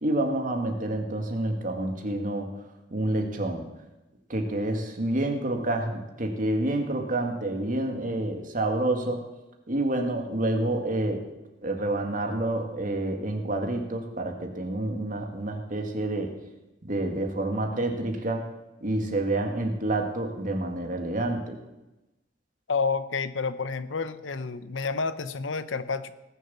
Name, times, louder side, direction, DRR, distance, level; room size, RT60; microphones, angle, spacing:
voice 1, 0.0-2.5 2.9-3.7 4.3-9.2 9.7-11.3 11.6-16.4 16.8-18.5 18.8-21.6, right 1 dB, 45° right, 4 dB, 2.0 m, -28 dB
voice 2, 22.7-26.1, left 4 dB, 90° left, 13 dB, 0.8 m, -29 dB
19.0 x 7.3 x 7.0 m, 1.0 s
head